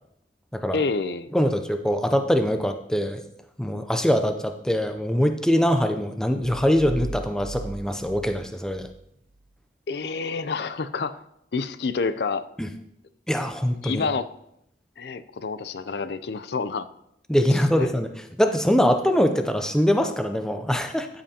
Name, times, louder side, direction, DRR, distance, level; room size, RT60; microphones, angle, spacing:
voice 1, 0.7-1.3 9.9-11.2 11.5-12.5 13.8-14.3 15.0-16.9 17.5-17.9, left 4 dB, 65° left, 12 dB, 0.5 m, -28 dB
voice 2, 1.3-3.2 3.6-8.9 12.6-12.7 13.3-14.1 17.3-21.1, equal, 5° left, 7 dB, 0.5 m, -23 dB
sound 1, 6.7-9.0, right 2 dB, 45° right, 0.6 m, -37 dB
13.5 x 7.7 x 2.8 m, 0.78 s
head